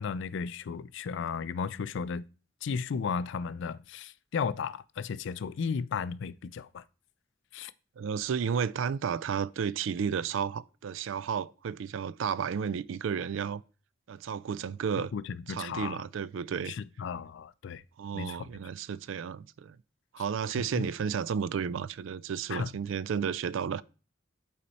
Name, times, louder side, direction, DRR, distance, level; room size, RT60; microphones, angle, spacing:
voice 1, 0.0-2.2 2.6-6.8 7.5-7.7 15.0-16.0 16.7-17.8 18.1-18.5 20.6-20.9 22.5-22.7, left 6 dB, 65° left, 0.4 m, -34 dB
voice 2, 8.0-13.6 14.1-15.1 15.5-16.8 18.0-19.8 20.1-23.8, right 7 dB, 75° right, 0.4 m, -32 dB
8.4 x 4.2 x 4.1 m
head